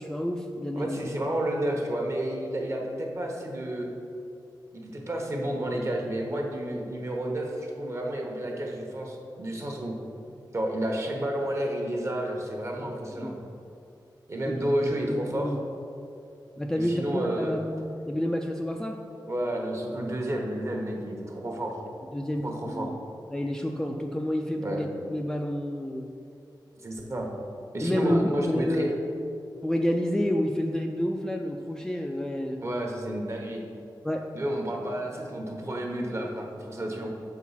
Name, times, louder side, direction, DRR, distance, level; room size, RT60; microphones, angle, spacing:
voice 1, 0.0-1.0 12.8-12.9 13.2-13.4 14.5-14.7 15.1-15.6 16.6-19.0 22.1-22.4 22.7-22.9 23.3-26.1 27.8-28.9 29.6-32.6 34.0-34.3, left 1 dB, 5° left, 2 dB, 0.3 m, -29 dB
voice 2, 0.8-3.9 4.7-9.9 10.5-13.3 14.3-15.5 16.7-17.5 19.3-21.8 22.4-22.9 24.6-24.8 26.8-27.3 27.7-28.9 32.6-33.6 34.3-37.1, right 1 dB, 35° right, 1 dB, 1.0 m, -31 dB
6.8 x 4.6 x 5.6 m, 2.6 s
wide cardioid pair, 125°, 8 cm